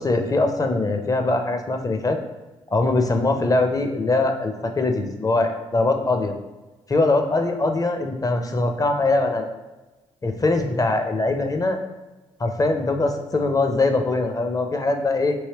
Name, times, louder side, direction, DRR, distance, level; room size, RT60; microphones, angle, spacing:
voice 1, 0.0-2.2 2.7-6.4 6.9-9.5 10.2-11.8 12.4-15.4, left 2 dB, 25° left, 5 dB, 0.5 m, -22 dB
3.2 x 2.8 x 2.9 m, 1.1 s
hypercardioid pair, 40°, 14 cm